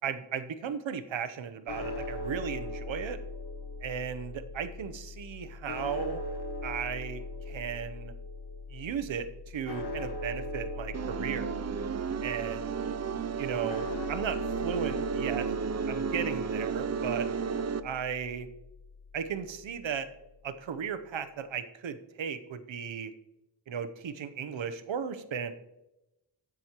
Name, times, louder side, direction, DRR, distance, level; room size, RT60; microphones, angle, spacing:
voice 1, 0.0-3.2 3.8-6.2 6.6-8.1 8.7-11.5 12.2-12.8 13.4-15.5 15.9-17.3 17.8-18.5 19.1-20.1 20.4-23.1 23.7-25.5, right 7 dB, 80° right, 11 dB, 0.8 m, -35 dB
sound 1, 1.7-19.9, left 2 dB, 60° left, 0.9 m, -40 dB
sound 2, 10.9-17.8, right 6 dB, 35° right, 0.4 m, -33 dB
15.0 x 6.1 x 2.9 m, 0.94 s
wide cardioid pair, 85°, 45 cm